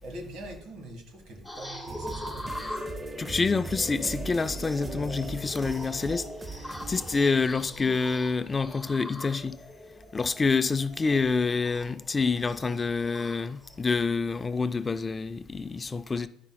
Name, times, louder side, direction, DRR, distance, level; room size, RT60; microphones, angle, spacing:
voice 1, 0.0-2.8 7.3-7.9, right 1 dB, 70° right, 1.6 m, -44 dB
sound 1, 1.4-13.8, left 1 dB, ahead, 1.9 m, -42 dB
sound 2, 1.9-7.2, right 3 dB, 20° right, 0.7 m, -39 dB
voice 2, 3.2-6.3 6.6-9.6 10.1-16.3, left 4 dB, 25° left, 0.3 m, -27 dB
10.0 x 5.5 x 2.2 m
supercardioid pair, 80°, 0 cm